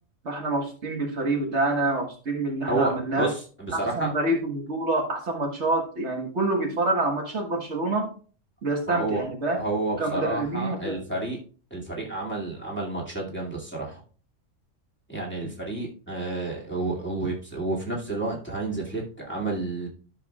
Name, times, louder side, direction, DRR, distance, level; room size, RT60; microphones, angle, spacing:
voice 1, 0.2-3.3 3.7-8.1 8.6-9.6 10.0-11.0, right 2 dB, 60° right, 1 dB, 1.7 m, -27 dB
voice 2, 2.7-4.1 8.9-9.2 9.6-11.4 11.7-14.0 15.1-19.9, right 2 dB, 10° left, -4 dB, 2.3 m, -30 dB
12.5 x 6.4 x 2.3 m, 0.40 s
omnidirectional pair, 1.3 m